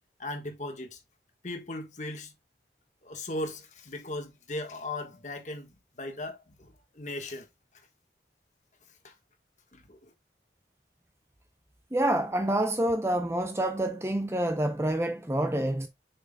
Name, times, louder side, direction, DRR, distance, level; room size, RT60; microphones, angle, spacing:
voice 1, 0.2-1.0 1.4-2.3 3.0-7.5 9.0-9.1 9.7-10.1, left 2 dB, 40° left, 1.5 m, -38 dB
voice 2, 11.9-15.9, right 1 dB, 15° right, 0.6 m, -27 dB
6.9 x 6.0 x 2.3 m
head